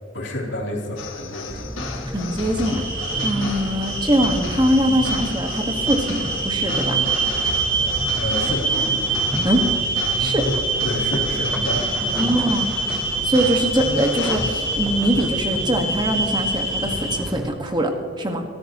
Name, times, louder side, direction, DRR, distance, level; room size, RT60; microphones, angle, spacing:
voice 1, 0.1-1.7 8.2-8.7 10.8-11.9, left 1 dB, 65° left, -2 dB, 3.3 m, -29 dB
sound 1, 1.0-15.0, left 3 dB, 90° left, 2.1 m, -34 dB
sound 2, 1.5-17.5, equal, ahead, 0.8 m, -32 dB
voice 2, 2.1-2.8 3.2-7.0 9.4-9.6 10.2-10.5 12.2-12.7 13.2-18.4, equal, 20° right, 4 dB, 1.5 m, -22 dB
sound 3, 2.6-17.2, right 3 dB, 40° right, 3.7 m, -25 dB
24.0 x 13.0 x 3.0 m, 2.3 s
head